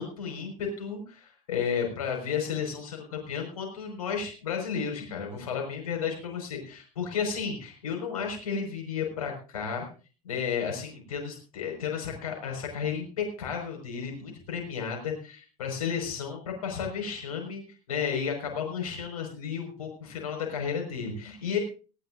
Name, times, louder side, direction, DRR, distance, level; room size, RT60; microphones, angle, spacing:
voice 1, 0.0-9.9 10.2-17.6 17.9-21.6, left 6 dB, 65° left, 2 dB, 5.3 m, -33 dB
18.5 x 17.0 x 2.6 m, 0.36 s
figure-of-eight pair, 70°, 20 cm